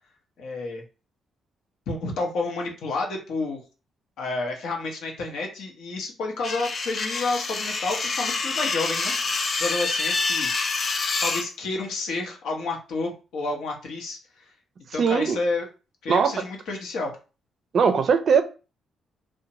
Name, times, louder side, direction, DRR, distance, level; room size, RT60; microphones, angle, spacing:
voice 1, 0.4-0.8 1.9-3.6 4.2-10.5 11.2-14.4 14.9-15.7 16.0-17.1, left 3 dB, 80° left, 0.8 m, -30 dB
sound 1, 6.4-11.4, left 4 dB, 40° left, 0.4 m, -27 dB
voice 2, 15.0-15.4 16.1-16.3 17.7-18.4, right 6 dB, 55° right, 0.4 m, -20 dB
2.5 x 2.2 x 2.9 m
cardioid pair, 90°, 0 cm